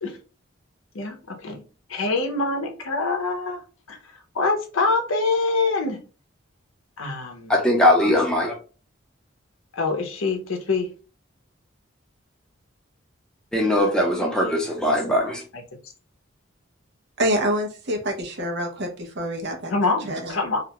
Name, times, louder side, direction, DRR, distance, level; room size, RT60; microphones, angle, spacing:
voice 1, 0.9-1.6 1.9-3.6 3.9-4.0 4.3-6.0 7.0-7.5 9.7-10.9 19.7-20.6, left 3 dB, 80° left, 0.6 m, -25 dB
voice 2, 7.5-8.6 13.5-15.4, left 1 dB, 5° left, 0.6 m, -20 dB
voice 3, 17.2-19.7 20.1-20.4, equal, 55° right, 0.7 m, -26 dB
2.5 x 2.1 x 2.8 m
head